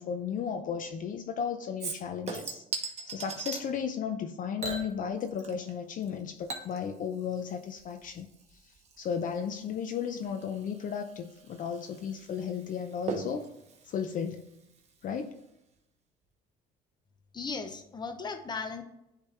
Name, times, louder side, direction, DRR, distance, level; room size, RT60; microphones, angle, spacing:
voice 1, 0.0-2.6 3.1-13.5 13.8-14.4 15.0-15.4, left 7 dB, 50° left, 6 dB, 0.6 m, -35 dB
Chink clink / Liquid, 1.8-3.6 4.6-5.7 6.0-15.0 15.4-15.5, right 4 dB, 40° right, 1.2 m, -41 dB
voice 2, 17.3-18.8, left 4 dB, 25° left, 7 dB, 0.8 m, -36 dB
9.9 x 3.3 x 3.2 m, 0.85 s
cardioid pair, 110°, 17 cm